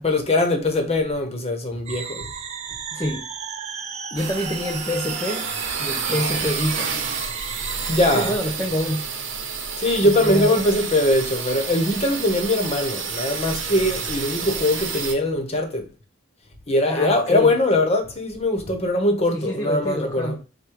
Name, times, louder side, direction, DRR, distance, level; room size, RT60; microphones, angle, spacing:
voice 1, 0.0-2.3 7.9-8.3 9.8-15.9 16.7-20.4, left 1 dB, 35° left, 0.9 m, -21 dB
sound 1, 1.9-8.3, right 6 dB, 35° right, 0.6 m, -34 dB
voice 2, 2.9-3.3 4.1-5.5 5.8-7.0 8.1-9.0 10.0-10.6 16.8-17.5 19.3-20.4, equal, 15° left, 0.5 m, -26 dB
sound 2, 4.2-15.1, right 5 dB, 70° right, 0.9 m, -30 dB
4.8 x 2.2 x 4.6 m
head